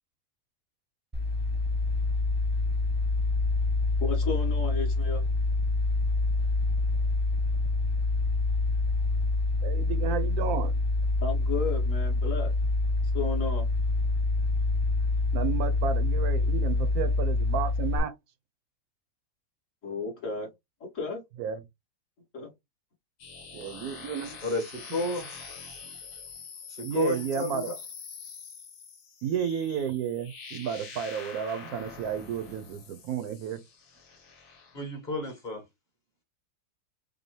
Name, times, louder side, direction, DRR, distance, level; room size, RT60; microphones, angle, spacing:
sound 1, 1.1-18.0, left 3 dB, 10° right, 0.6 m, -26 dB
voice 1, 4.0-5.2 11.2-12.5 13.1-13.7 19.8-20.5 20.9-21.2 22.3-22.5, left 4 dB, 55° left, 2.1 m, -33 dB
voice 2, 9.6-10.7 15.3-18.1 21.4-21.6 23.5-24.4 26.8-27.7 29.2-33.6, right 8 dB, 75° right, 1.1 m, -32 dB
sound 2, 23.2-34.8, left 5 dB, 85° left, 1.6 m, -45 dB
voice 3, 24.4-25.4 26.7-27.7 34.7-35.6, left 2 dB, 30° left, 1.4 m, -31 dB
5.2 x 2.2 x 3.1 m
omnidirectional pair, 1.6 m